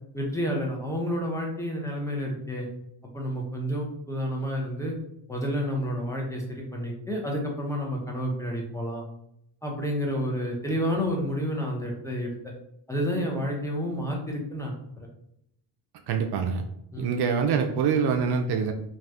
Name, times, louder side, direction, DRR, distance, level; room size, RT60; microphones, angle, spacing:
voice 1, 0.1-2.7 3.1-4.9 5.3-9.0 9.6-12.5 12.9-14.7 16.9-17.1, equal, 5° left, -1 dB, 0.9 m, -30 dB
voice 2, 16.1-16.6 17.0-18.7, right 6 dB, 60° right, 5 dB, 0.5 m, -25 dB
2.6 x 2.4 x 3.4 m, 0.78 s
supercardioid pair, 75°, 46 cm